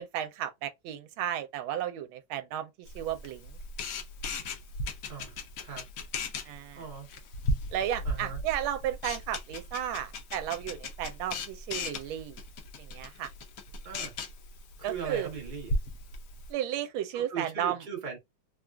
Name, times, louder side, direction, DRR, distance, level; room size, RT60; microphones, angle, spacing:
voice 1, 0.0-2.7 2.9-3.4 6.5-6.8 7.7-12.4 12.8-13.3 14.8-15.3 16.5-17.8, right 11 dB, 80° right, 1.4 m, -33 dB
Camera, 2.9-16.5, left 1 dB, 70° left, 0.8 m, -37 dB
voice 2, 6.8-7.1 8.0-8.4 13.8-14.1 14.8-15.8 17.1-18.2, right 6 dB, 45° right, 0.6 m, -39 dB
3.5 x 2.4 x 2.2 m
omnidirectional pair, 2.2 m